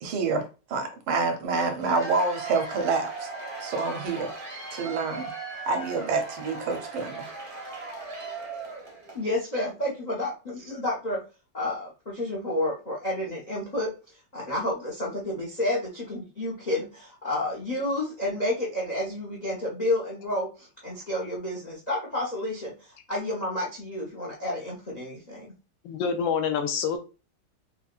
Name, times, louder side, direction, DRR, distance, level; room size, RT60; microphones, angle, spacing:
voice 1, 0.0-3.3 3.6-4.3 4.7-5.3 5.7-7.3, right 4 dB, 85° right, 1.6 m, -27 dB
Cheering / Applause / Crowd, 1.6-9.2, right 3 dB, 50° right, 0.6 m, -38 dB
voice 2, 9.1-11.2 11.5-13.9 14.3-25.5, left 1 dB, 60° left, 0.4 m, -30 dB
voice 3, 25.8-27.0, left 6 dB, 75° left, 1.2 m, -26 dB
5.4 x 2.2 x 2.4 m
omnidirectional pair, 2.3 m